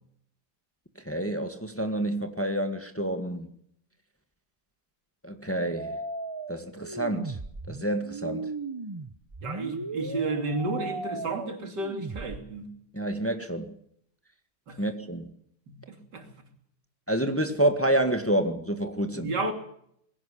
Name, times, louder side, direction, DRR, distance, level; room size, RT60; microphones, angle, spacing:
voice 1, 1.0-3.5 5.2-6.0 6.5-7.4 7.7-8.5 12.9-13.7 14.8-15.3 17.1-19.3, right 1 dB, 10° left, 1.6 m, -28 dB
sound 1, 5.8-12.4, right 3 dB, 25° right, 0.6 m, -37 dB
voice 2, 9.4-12.7 14.7-14.8 15.7-16.3 19.1-19.5, right 2 dB, 90° right, 3.5 m, -32 dB
21.0 x 16.5 x 8.4 m
omnidirectional pair, 1.8 m